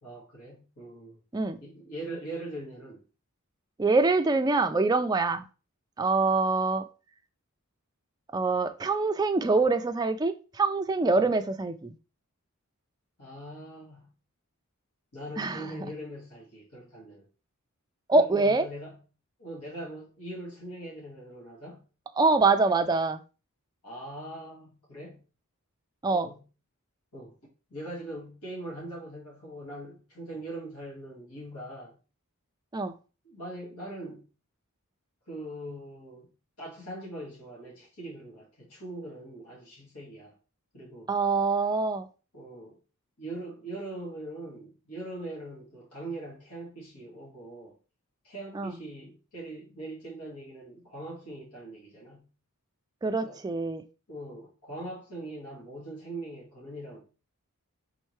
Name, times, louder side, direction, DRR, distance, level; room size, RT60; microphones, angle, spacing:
voice 1, 0.0-1.2 1.6-3.0 11.2-11.3 13.2-14.1 15.1-17.3 18.1-19.0 19.4-21.8 23.8-25.2 26.1-26.4 27.1-27.4 27.7-32.0 33.2-34.3 35.3-36.3 36.6-40.4 40.7-41.1 42.3-42.8 43.2-47.8 48.2-52.3 53.2-53.4 54.1-57.0, right 1 dB, 85° left, 1.9 m, -41 dB
voice 2, 3.8-5.5 6.0-6.8 8.3-11.9 15.4-15.7 18.1-18.6 22.2-23.2 26.0-26.3 32.7-32.9 41.1-42.1 48.5-48.7 53.0-53.8, right 3 dB, 20° right, 0.3 m, -25 dB
4.5 x 3.6 x 3.1 m
head